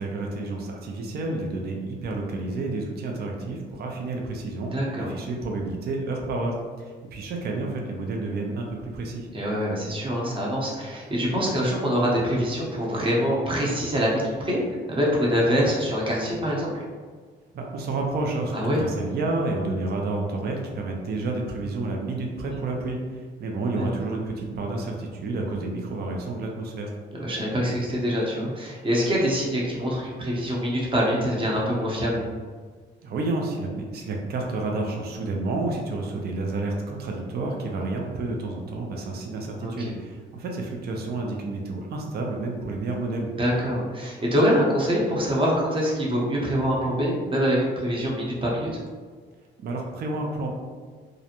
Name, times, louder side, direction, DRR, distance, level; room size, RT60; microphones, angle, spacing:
voice 1, 0.0-9.3 17.5-26.9 33.0-43.3 49.6-50.5, right 2 dB, 55° right, 1 dB, 0.5 m, -30 dB
voice 2, 4.7-5.1 9.3-16.8 18.5-18.8 23.7-24.0 27.2-32.2 39.6-39.9 43.4-48.7, equal, 25° right, -4 dB, 0.8 m, -25 dB
2.5 x 2.0 x 2.8 m, 1.5 s
cardioid pair, 90°, 20 cm